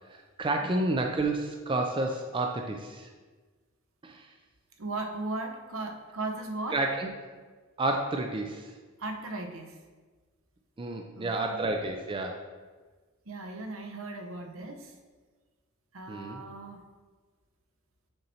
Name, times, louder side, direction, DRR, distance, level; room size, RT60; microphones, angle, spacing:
voice 1, 0.1-3.1 4.0-4.3 6.7-7.1 7.8-8.7 10.8-12.5 16.1-16.4, right 2 dB, 25° right, 3 dB, 0.4 m, -30 dB
voice 2, 4.8-6.8 9.0-9.8 11.2-11.6 13.3-15.0 15.9-16.8, right 2 dB, 70° right, 4 dB, 0.8 m, -37 dB
6.6 x 4.3 x 4.1 m, 1.4 s
head